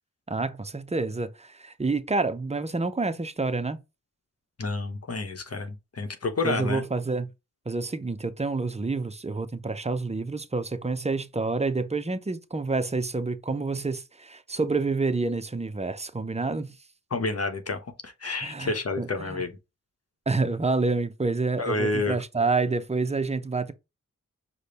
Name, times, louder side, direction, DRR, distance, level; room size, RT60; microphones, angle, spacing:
voice 1, 0.3-3.8 6.4-7.3 7.7-16.7 18.4-19.4 20.3-23.7, right 3 dB, 20° right, 0.6 m, -28 dB
voice 2, 4.6-6.8 17.1-19.6 21.6-22.2, left 3 dB, 50° left, 1.0 m, -29 dB
5.0 x 2.3 x 4.0 m
cardioid pair, 45°, 32 cm